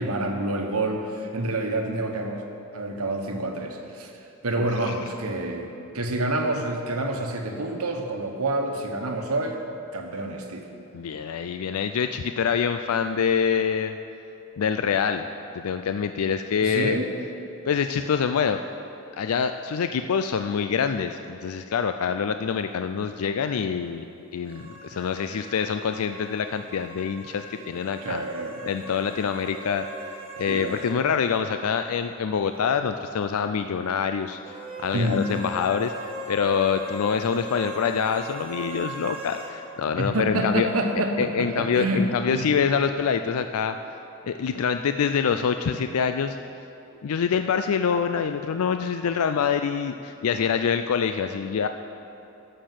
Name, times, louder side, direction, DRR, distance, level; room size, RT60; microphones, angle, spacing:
voice 1, 0.0-2.4 2.7-9.6 9.9-10.7 16.6-17.1 28.0-28.6 30.5-30.8 34.9-35.3 40.0-42.5, right 1 dB, 85° right, 3 dB, 1.3 m, -28 dB
voice 2, 4.6-4.9 10.9-14.0 14.6-15.3 15.5-17.0 17.6-18.6 19.2-24.0 24.3-28.3 28.7-29.9 30.4-40.7 41.2-43.8 44.2-46.4 47.0-51.7, left 6 dB, 80° left, 8 dB, 0.4 m, -25 dB
sound 1, 24.4-31.0 31.3-31.4 34.4-39.6, right 1 dB, 25° right, 1.3 m, -39 dB
11.5 x 6.7 x 7.5 m, 2.9 s
head